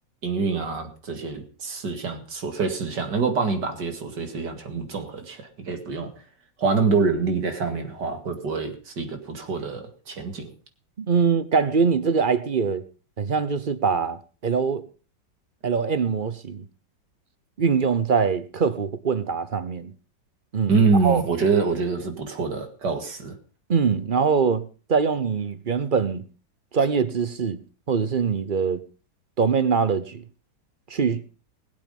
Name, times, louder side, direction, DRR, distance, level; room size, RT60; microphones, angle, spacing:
voice 1, 0.2-6.1 6.6-10.5 20.7-23.4, right 4 dB, 65° right, 2.7 m, -25 dB
voice 2, 11.0-12.8 13.2-14.8 15.6-16.7 17.6-19.9 20.5-21.2 23.7-26.3 26.7-27.6 27.9-28.8 29.4-30.2 30.9-31.2, right 5 dB, 40° right, 0.7 m, -23 dB
20.5 x 8.5 x 5.4 m
omnidirectional pair, 2.0 m